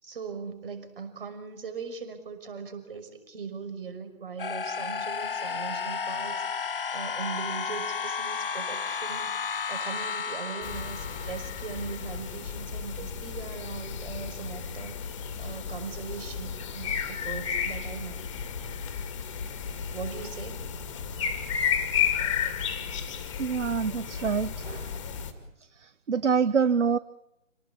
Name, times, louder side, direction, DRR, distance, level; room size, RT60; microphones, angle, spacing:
voice 1, 0.0-6.6 6.9-18.2 19.9-20.7, right 5 dB, 45° right, 8 dB, 5.8 m, -40 dB
sound 1, 4.4-12.3, left 6 dB, 45° left, 0.9 m, -33 dB
sound 2, 10.6-25.3, left 7 dB, 25° left, 2.4 m, -33 dB
voice 2, 23.4-24.9 26.1-27.0, right 6 dB, 60° right, 15 dB, 1.0 m, -25 dB
28.0 x 18.5 x 8.6 m, 0.87 s
figure-of-eight pair, 155°, 39 cm